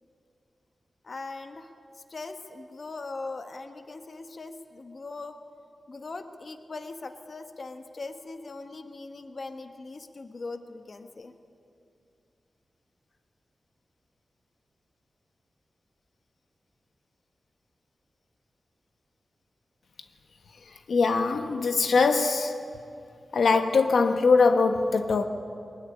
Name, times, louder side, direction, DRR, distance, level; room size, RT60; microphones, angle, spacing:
voice 1, 1.0-5.4 5.9-11.3, left 3 dB, 45° left, 1.3 m, -40 dB
voice 2, 20.7-22.6 23.3-25.3, left 4 dB, 75° left, 1.3 m, -22 dB
22.5 x 21.0 x 10.0 m
wide cardioid pair, 140°, 0 cm